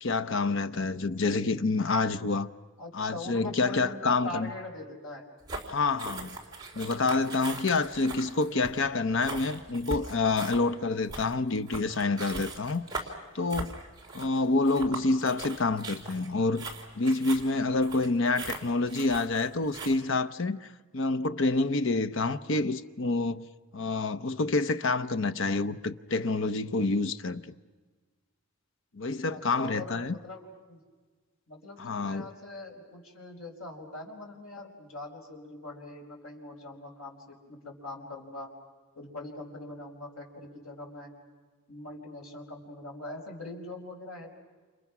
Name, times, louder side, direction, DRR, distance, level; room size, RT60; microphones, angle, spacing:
voice 1, 0.0-2.5 2.9-4.5 5.7-6.4 6.8-12.8 13.3-13.7 14.1-16.6 17.0-20.7 20.9-23.5 23.7-27.4 28.9-30.1 31.8-32.3, left 3 dB, 60° left, 0.8 m, -28 dB
voice 2, 2.8-5.2 29.3-30.8 31.5-38.5 39.0-41.1 41.7-44.4, left 2 dB, 75° left, 5.2 m, -42 dB
sound 1, 5.4-19.9, right 3 dB, 20° right, 3.4 m, -40 dB
30.0 x 28.5 x 6.1 m
head